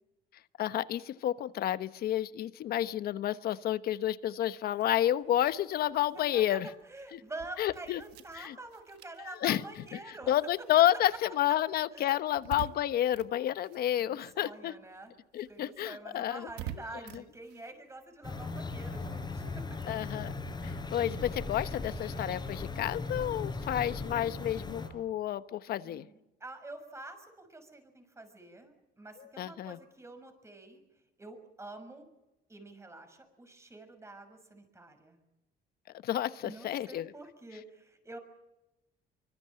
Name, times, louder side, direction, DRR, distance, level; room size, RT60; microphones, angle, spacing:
voice 1, 0.6-6.7 7.1-7.2 7.6-8.0 8.3-8.5 9.4-9.6 10.3-14.7 15.3-16.5 19.9-20.3 20.6-26.1 29.2-29.8 36.0-37.1, left 12 dB, 65° left, 13 dB, 1.1 m, -30 dB
sound 1, 4.7-14.6 14.8-21.8, right 11 dB, 90° right, 1.4 m, -50 dB
voice 2, 6.1-6.6 6.8-10.4 11.9-12.2 14.0-15.1 15.5-19.6 25.8-30.8 31.2-32.1 32.5-35.2 36.4-38.2, right 2 dB, 15° right, 7 dB, 6.3 m, -47 dB
sound 2, 18.2-24.9, left 3 dB, 25° left, 5.1 m, -38 dB
25.0 x 24.5 x 7.7 m, 0.95 s
cardioid pair, 110°, 17 cm